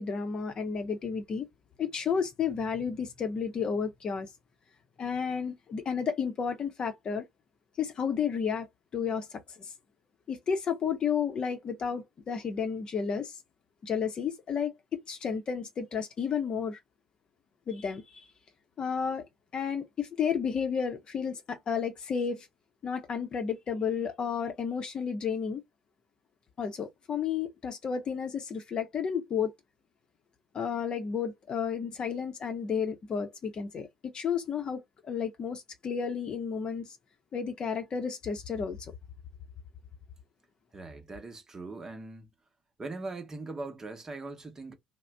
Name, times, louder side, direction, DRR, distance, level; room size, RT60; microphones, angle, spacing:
voice 1, 0.0-1.5 1.8-4.3 5.0-7.2 7.8-8.7 8.9-9.4 10.3-13.3 13.8-14.7 15.1-16.8 17.7-18.2 18.8-19.2 19.5-22.5 22.8-25.6 26.6-29.5 30.5-37.0 37.3-38.8, left 6 dB, 40° left, 0.8 m, -32 dB
voice 2, 40.7-42.3 42.8-44.7, right 3 dB, 25° right, 0.9 m, -40 dB
2.5 x 2.1 x 3.3 m
figure-of-eight pair, 55°, 2 cm